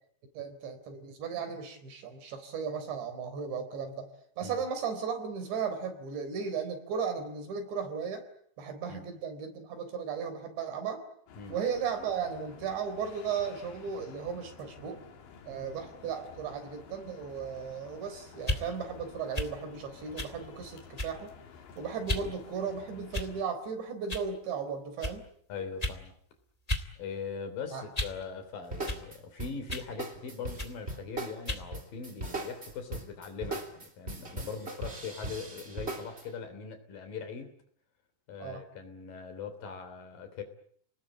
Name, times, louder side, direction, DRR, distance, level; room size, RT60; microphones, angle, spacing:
voice 1, 0.3-4.1 4.4-8.2 8.6-11.0 11.5-15.0 15.5-21.3 21.8-25.2 27.7-27.9 38.4-38.6, right 6 dB, 85° right, 7 dB, 6.2 m, -35 dB
sound 1, 11.3-23.4, left 6 dB, 85° left, 4.8 m, -52 dB
sound 2, 18.4-18.6 19.3-19.5 20.2-20.4 21.0-21.3 22.1-22.3 23.1-23.5 24.1-24.3 25.0-25.2 25.8-26.0 26.7-26.9 27.2-28.2 28.9-29.0 29.7-29.9 30.6-30.8 31.5-31.7, left 1 dB, 25° left, 0.8 m, -34 dB
voice 2, 25.5-26.1 27.0-37.5 38.3-40.4, left 5 dB, 55° left, 8 dB, 4.7 m, -41 dB
sound 3, 28.7-36.2, right 2 dB, 20° right, 2.6 m, -39 dB
29.5 x 20.0 x 8.6 m, 0.65 s
omnidirectional pair, 5.0 m